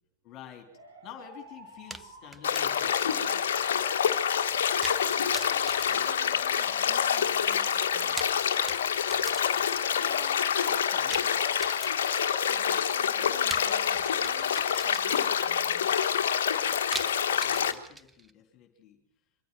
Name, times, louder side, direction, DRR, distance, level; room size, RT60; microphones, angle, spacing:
voice 1, 0.2-0.7 1.0-3.5 9.9-11.6 17.3-19.0, left 10 dB, 35° left, 4 dB, 3.2 m, -49 dB
sound 1, 0.7-10.0, right 1 dB, 80° right, 6.7 m, -55 dB
sound 2, 1.9-3.4 3.7-3.8 4.8-5.1 5.3-6.9 7.9-10.1 11.1-12.3 13.5-15.4 16.9-18.3, right 2 dB, 5° right, 0.8 m, -42 dB
sound 3, 2.4-17.7, left 8 dB, 60° left, 1.3 m, -27 dB
voice 2, 4.9-8.3 12.5-15.9, right 3 dB, 25° right, 2 dB, 6.4 m, -52 dB
24.5 x 14.5 x 7.7 m, 0.69 s
figure-of-eight pair, 90°, 0 cm